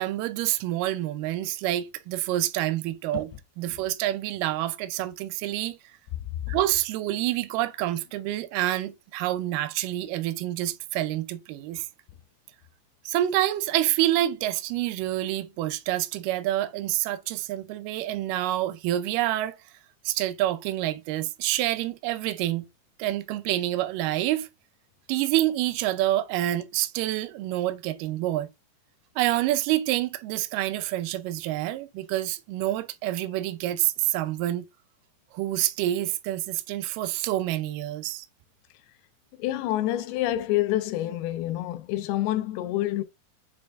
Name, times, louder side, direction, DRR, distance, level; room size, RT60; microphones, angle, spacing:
voice 1, 0.0-3.3 3.6-5.8 6.5-11.9 13.1-19.6 20.1-22.7 23.0-24.5 25.1-28.5 29.2-34.7 35.3-38.3, right 14 dB, 90° right, 1.9 m, -27 dB
voice 2, 39.4-43.0, left 14 dB, 85° left, 2.5 m, -27 dB
6.4 x 2.5 x 3.3 m
omnidirectional pair, 4.4 m